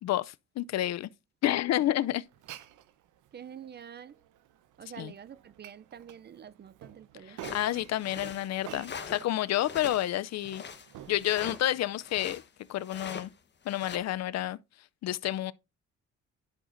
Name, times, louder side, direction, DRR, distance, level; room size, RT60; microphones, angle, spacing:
voice 1, 0.0-1.1 1.4-2.2 5.0-5.1 7.3-10.6 11.1-12.4 12.7-13.3 13.7-14.6 15.0-15.5, left 13 dB, 60° left, 0.5 m, -29 dB
Glass, 2.3-12.2, right 11 dB, 85° right, 0.8 m, -50 dB
voice 2, 3.3-4.2 4.8-7.6, right 8 dB, 35° right, 0.5 m, -47 dB
sound 1, 7.4-9.3 9.6-12.5 12.8-13.3 13.7-14.0, left 6 dB, 35° left, 1.1 m, -43 dB
10.5 x 6.4 x 2.6 m
cardioid pair, 90°, 30 cm